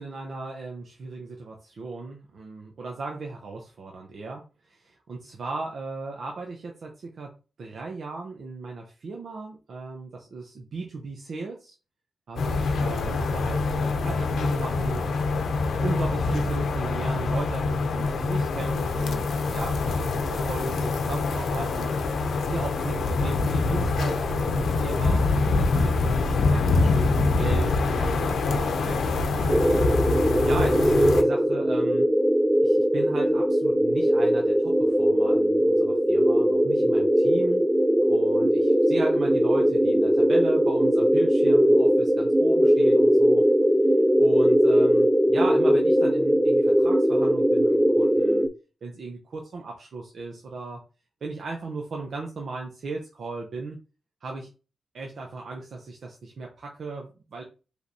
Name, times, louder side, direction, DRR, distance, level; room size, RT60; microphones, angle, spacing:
voice 1, 0.0-7.3 7.6-11.7 12.3-15.1 15.8-29.6 30.0-32.1 32.6-37.7 38.0-43.5 44.2-48.5 48.8-50.8 51.2-53.8 54.2-54.5 54.9-57.4, right 3 dB, 60° right, 0 dB, 0.7 m, -36 dB
sound 1, 12.4-31.2, left 3 dB, 85° left, 0.6 m, -25 dB
sound 2, 29.5-48.5, equal, 5° right, 0.4 m, -20 dB
5.1 x 3.2 x 2.8 m, 0.33 s
wide cardioid pair, 140°, 0 cm